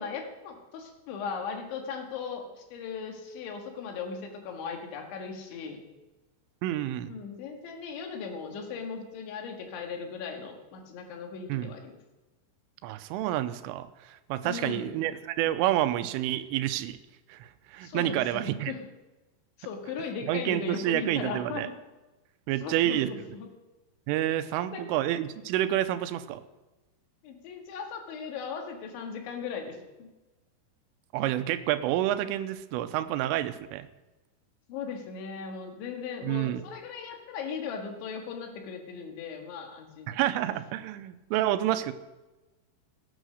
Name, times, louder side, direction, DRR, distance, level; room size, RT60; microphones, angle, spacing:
voice 1, 0.0-5.8 7.1-12.0 14.4-14.9 17.8-18.8 19.6-21.7 22.6-23.5 24.5-24.8 27.2-30.1 34.7-40.1, left 5 dB, 70° left, 3 dB, 4.1 m, -38 dB
voice 2, 6.6-7.1 11.5-11.7 12.8-17.0 17.3-18.7 20.3-21.7 22.5-23.1 24.1-26.4 31.1-33.9 36.2-36.6 40.1-41.9, right 13 dB, 85° right, 12 dB, 3.2 m, -29 dB
17.5 x 9.2 x 6.5 m, 1.1 s
omnidirectional pair, 5.8 m